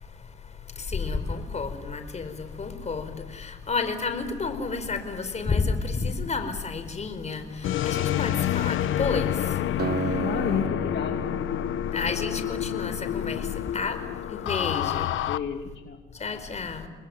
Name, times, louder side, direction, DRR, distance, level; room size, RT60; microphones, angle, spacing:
voice 1, 0.8-9.3 11.9-13.5 13.7-14.0 14.3-15.1 16.2-16.9, left 4 dB, 35° left, 8 dB, 4.6 m, -30 dB
sound 1, 7.6-15.4, left 12 dB, 80° left, 1.0 m, -28 dB
Acoustic guitar, 9.8-13.4, right 8 dB, 55° right, 1.3 m, -35 dB
voice 2, 10.2-11.3 14.6-16.0, left 7 dB, 60° left, 4 dB, 2.7 m, -32 dB
29.0 x 20.5 x 9.5 m, 1.3 s
cardioid pair, 90°, 20 cm